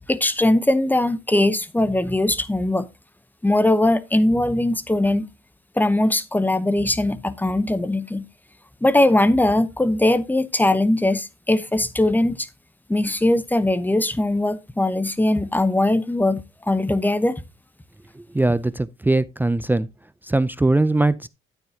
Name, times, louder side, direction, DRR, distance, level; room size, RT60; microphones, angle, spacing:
voice 1, 0.1-2.9 3.4-5.3 5.8-8.3 8.8-12.5 12.9-17.4, left 1 dB, 10° left, 0.9 m, -20 dB
voice 2, 18.3-19.9 20.3-21.3, right 2 dB, 10° right, 0.5 m, -20 dB
10.5 x 9.1 x 2.8 m
cardioid pair, 90°, 20 cm